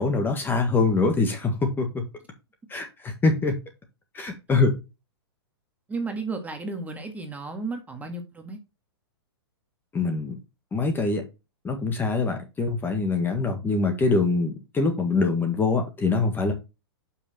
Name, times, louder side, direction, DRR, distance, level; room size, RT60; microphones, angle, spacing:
voice 1, 0.0-2.0 2.7-3.5 4.1-4.7 9.9-10.4 10.7-11.2 11.6-16.5, left 3 dB, 15° left, 1.5 m, -24 dB
voice 2, 5.9-8.6, right 3 dB, 10° right, 1.7 m, -33 dB
7.0 x 5.9 x 4.2 m
hypercardioid pair, 125°, 14 cm